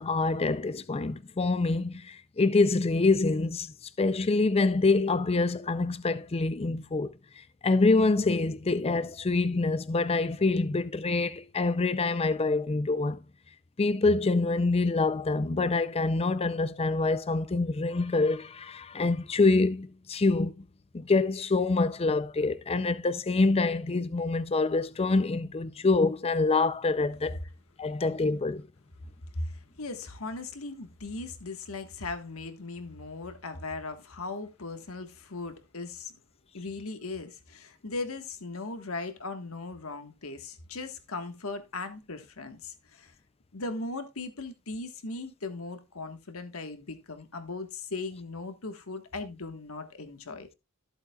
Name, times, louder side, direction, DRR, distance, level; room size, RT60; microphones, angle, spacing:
voice 1, 0.0-13.2 13.8-20.6 20.9-27.4 27.8-28.7, left 3 dB, 30° left, 0.5 m, -26 dB
voice 2, 29.3-36.1 36.5-43.1 43.5-50.6, left 3 dB, 70° left, 1.5 m, -38 dB
14.0 x 8.0 x 2.4 m
head